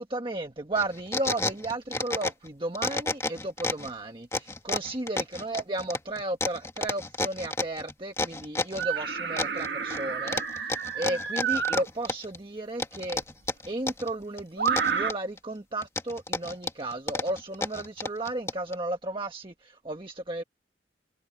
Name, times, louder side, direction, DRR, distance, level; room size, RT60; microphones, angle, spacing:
voice 1, 0.0-13.2 13.6-20.4, right 2 dB, 30° right, 1.4 m, -34 dB
sound 1, 0.8-2.5 2.7-3.9 4.3-8.9 9.4-10.0 10.3-12.4 12.8-14.1 14.4-15.4 15.8-18.7, left 2 dB, 15° left, 1.8 m, -31 dB
sound 2, 8.8-11.9 13.2-13.3 14.6-15.1, right 6 dB, 70° right, 1.8 m, -29 dB
head